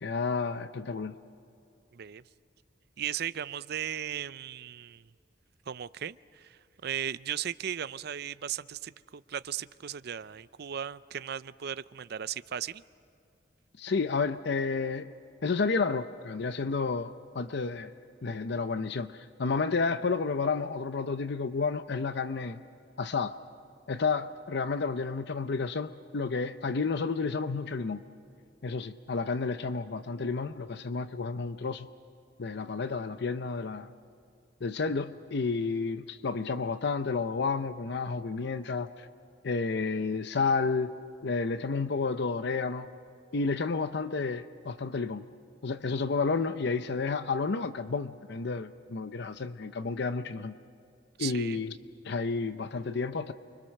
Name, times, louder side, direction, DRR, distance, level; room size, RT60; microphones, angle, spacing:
voice 1, 0.0-1.1 13.8-15.1 15.4-17.9 18.2-22.6 23.0-23.3 23.9-28.0 28.6-31.9 32.4-33.9 34.6-39.1 39.4-40.9 41.2-42.9 43.3-45.3 45.6-50.5 51.2-51.8 52.0-53.3, left 4 dB, 60° left, 11 dB, 0.6 m, -31 dB
voice 2, 1.9-2.2 3.0-5.1 5.7-12.8 51.2-51.6, right 9 dB, 60° right, 16 dB, 0.5 m, -37 dB
29.0 x 24.5 x 6.5 m, 2.6 s
head